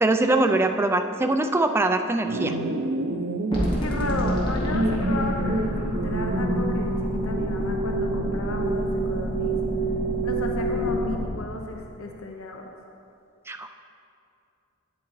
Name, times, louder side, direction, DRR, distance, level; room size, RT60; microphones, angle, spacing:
voice 1, 0.0-2.5 13.5-13.8, right 2 dB, 10° right, 6 dB, 0.3 m, -22 dB
sound 1, 2.3-11.2, right 2 dB, 75° right, 0.6 m, -28 dB
sound 2, 3.5-11.3, equal, 25° left, 1.7 m, -29 dB
voice 2, 3.8-9.6 10.2-12.7, left 2 dB, 75° left, 2 dB, 0.7 m, -34 dB
9.4 x 8.5 x 3.1 m, 2.5 s
head